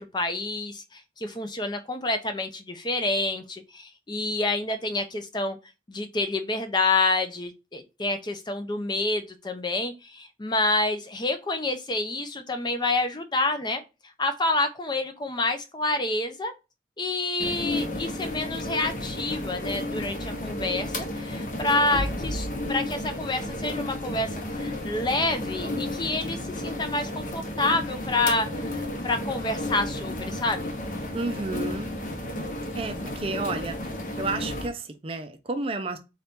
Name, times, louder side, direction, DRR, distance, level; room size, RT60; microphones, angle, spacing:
voice 1, 0.0-5.6 5.9-13.8 14.2-16.5 17.0-30.7, left 2 dB, 25° left, 0.5 m, -28 dB
sound 1, 17.4-34.7, left 1 dB, 45° left, 0.9 m, -32 dB
voice 2, 31.1-31.9 32.7-33.8 34.2-36.0, right 3 dB, 30° right, 0.5 m, -31 dB
3.9 x 2.8 x 3.5 m
head